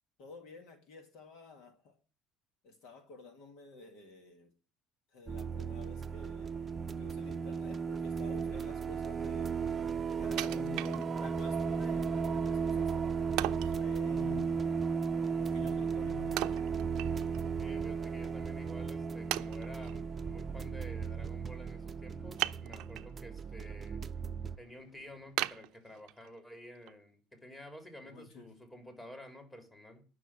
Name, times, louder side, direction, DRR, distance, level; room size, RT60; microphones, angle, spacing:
voice 1, 0.2-2.0 2.6-4.5 5.1-6.6 7.0-9.5 10.1-16.6 22.7-22.9 28.0-28.5, left 5 dB, 70° left, 2.2 m, -51 dB
sound 1, 5.3-24.6, right 6 dB, 25° right, 0.6 m, -35 dB
sound 2, 8.0-25.4, left 2 dB, 50° left, 5.1 m, -67 dB
Wood, 10.4-11.5 12.0-12.1 13.4-13.8 16.4-17.5 17.8-17.9 18.6-18.7 19.3-20.0 22.4-23.1 23.6-24.1 24.5-24.6 25.4-26.4 26.9-27.0, right 16 dB, 70° right, 0.5 m, -37 dB
voice 2, 17.6-24.0 24.6-30.0, left 1 dB, 15° left, 3.5 m, -51 dB
10.5 x 6.3 x 8.5 m
supercardioid pair, 95°, 0 cm